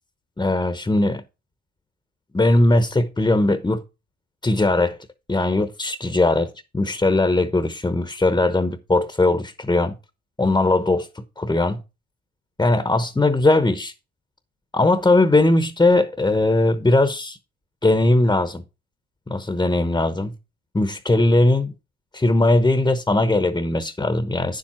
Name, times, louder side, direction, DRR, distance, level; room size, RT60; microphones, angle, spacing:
voice 1, 0.4-1.2 2.3-3.8 4.4-5.0 5.3-9.9 10.4-11.1 11.4-11.8 12.6-13.9 14.7-17.4 17.8-18.6 19.3-20.3 20.7-21.7 22.1-24.6, left 2 dB, 15° left, 1.0 m, -19 dB
9.7 x 7.5 x 4.4 m
cardioid pair, 90°, 30 cm